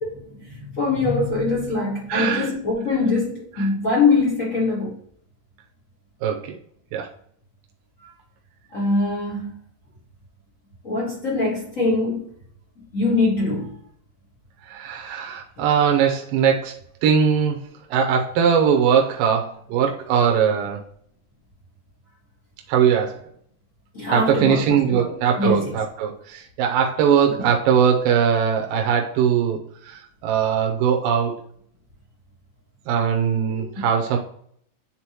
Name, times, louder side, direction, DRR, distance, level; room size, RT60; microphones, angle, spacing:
voice 1, 0.0-5.0 8.0-8.1 8.7-9.5 10.8-12.3 12.9-13.8 23.9-25.7 27.3-27.4 33.5-33.7, left 3 dB, 50° left, -5 dB, 0.9 m, -23 dB
voice 2, 2.1-2.5 6.2-6.5 6.9-7.1 14.7-17.6 17.9-20.8 22.7-23.2 24.1-31.4 32.9-34.2, right 7 dB, 80° right, 2 dB, 2.4 m, -20 dB
9.7 x 3.8 x 3.0 m, 0.63 s
omnidirectional pair, 4.1 m